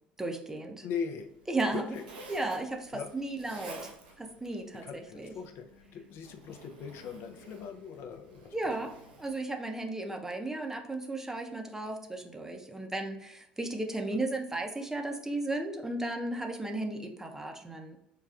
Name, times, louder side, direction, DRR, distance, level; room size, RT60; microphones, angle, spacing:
voice 1, 0.2-0.8 1.5-1.8 2.3-3.9 4.2-5.3 8.5-8.9 9.2-18.0, right 2 dB, 10° right, 3 dB, 0.6 m, -35 dB
voice 2, 0.8-1.3 1.7-2.0 2.9-3.1 4.7-8.5, left 6 dB, 60° left, 5 dB, 0.5 m, -40 dB
Zipper (clothing), 1.2-9.4, right 2 dB, 90° right, 0.6 m, -51 dB
5.6 x 2.3 x 2.4 m, 0.83 s
hypercardioid pair, 75°, 5 cm